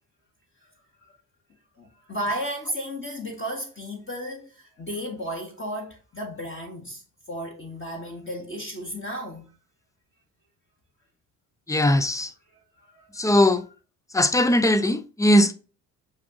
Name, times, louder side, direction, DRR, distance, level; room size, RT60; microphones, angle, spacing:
voice 1, 1.8-7.0 7.3-9.5 12.8-13.3, equal, 25° left, 1.3 m, -34 dB
voice 2, 11.7-12.3 13.1-13.7 14.1-15.5, left 1 dB, 10° left, 0.3 m, -19 dB
7.2 x 2.5 x 2.8 m
hypercardioid pair, 50°, 47 cm